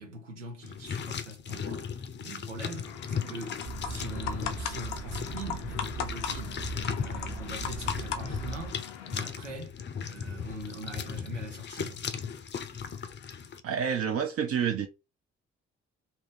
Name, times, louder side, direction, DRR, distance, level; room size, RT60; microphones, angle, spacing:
voice 1, 0.0-12.1, right 1 dB, 85° right, 0.8 m, -43 dB
sound 1, 0.6-13.6, left 7 dB, 30° left, 0.5 m, -37 dB
sound 2, 2.8-9.3, left 8 dB, 75° left, 0.5 m, -39 dB
sound 3, 3.6-8.7, right 4 dB, 60° right, 1.1 m, -40 dB
voice 2, 13.6-14.9, right 7 dB, 40° right, 0.5 m, -28 dB
2.7 x 2.5 x 3.4 m
figure-of-eight pair, 40°, 35 cm